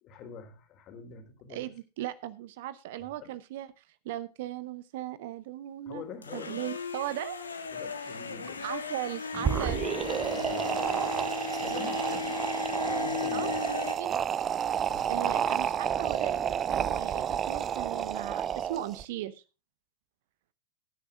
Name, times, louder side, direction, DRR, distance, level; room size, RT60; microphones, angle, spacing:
voice 1, 0.0-1.7 3.2-3.3 5.9-6.6 7.7-8.7 10.2-11.3 11.6-12.3 12.8-13.6 14.9-15.4, left 5 dB, 35° left, 6 dB, 3.4 m, -45 dB
voice 2, 1.5-6.0 6.3-7.4 8.6-9.9 11.7-12.2 13.3-14.3 15.1-19.4, right 13 dB, 50° right, 17 dB, 0.8 m, -38 dB
sound 1, 6.2-13.9, left 6 dB, 75° left, 1.8 m, -36 dB
sound 2, 9.3-19.0, right 9 dB, 25° right, 0.5 m, -30 dB
19.0 x 9.9 x 2.4 m, 0.30 s
figure-of-eight pair, 90°, 0 cm